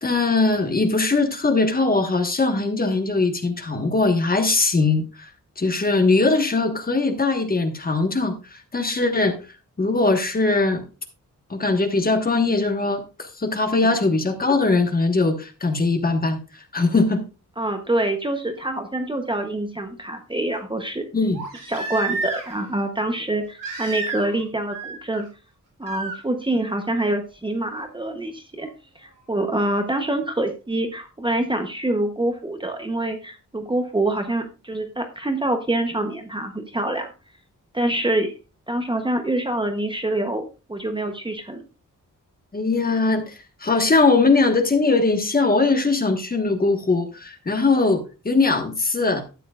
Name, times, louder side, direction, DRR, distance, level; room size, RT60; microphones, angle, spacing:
voice 1, 0.0-5.3 5.6-9.4 9.8-10.8 11.5-17.2 21.1-21.4 42.5-49.2, left 3 dB, 30° left, 5 dB, 1.4 m, -21 dB
voice 2, 17.6-21.1 21.7-25.3 25.8-28.7 29.0-37.1 37.7-38.3 38.7-41.6, right 1 dB, 15° right, 5 dB, 0.9 m, -25 dB
Crying sobbing, 18.6-18.7 21.3-22.7 23.6-24.4 24.7-25.2 25.8-26.2 27.8-27.9, right 3 dB, 80° right, 4.1 m, -31 dB
12.5 x 9.2 x 2.4 m, 0.31 s
wide cardioid pair, 170°, 32 cm